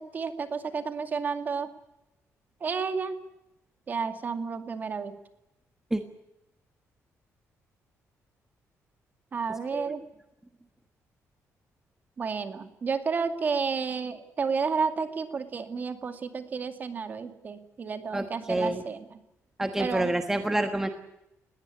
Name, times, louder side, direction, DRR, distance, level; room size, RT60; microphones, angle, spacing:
voice 1, 0.0-1.7 2.6-3.2 3.9-5.2 9.3-10.0 12.2-19.0 19.8-20.1, right 5 dB, 30° right, 8 dB, 2.2 m, -31 dB
voice 2, 18.1-18.8 19.6-20.9, right 1 dB, 5° right, 6 dB, 1.4 m, -28 dB
20.5 x 17.0 x 9.8 m, 0.89 s
cardioid pair, 175°, 6 cm